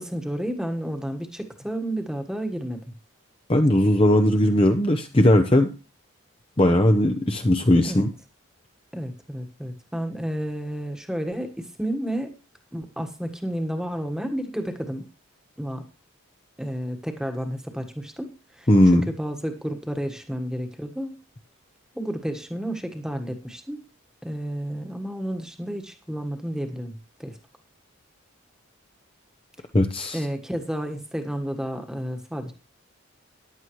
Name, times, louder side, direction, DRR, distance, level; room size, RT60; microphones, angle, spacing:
voice 1, 0.0-2.8 7.8-8.1 8.9-12.3 12.7-15.1 15.6-15.8 16.6-21.2 21.9-23.8 24.2-27.4 30.1-32.5, equal, 5° right, 5 dB, 1.4 m, -31 dB
voice 2, 3.5-5.7 6.6-8.1 18.7-19.1 29.7-30.2, left 1 dB, 25° left, 5 dB, 0.8 m, -18 dB
14.0 x 11.0 x 3.1 m, 0.33 s
head